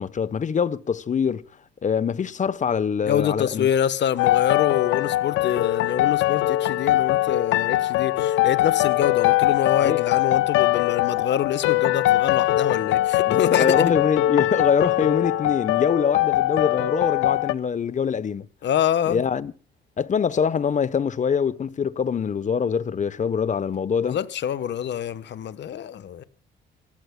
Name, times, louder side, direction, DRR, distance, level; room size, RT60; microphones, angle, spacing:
voice 1, 0.0-1.4 1.8-3.7 9.8-10.0 13.3-18.5 19.1-19.5 20.0-24.2, left 6 dB, 40° left, 0.9 m, -24 dB
voice 2, 3.0-13.9 18.6-19.2 24.0-26.2, left 9 dB, 65° left, 1.2 m, -26 dB
sound 1, 4.2-17.5, left 15 dB, 90° left, 0.6 m, -22 dB
27.5 x 15.0 x 2.3 m
cardioid pair, 90°, 20 cm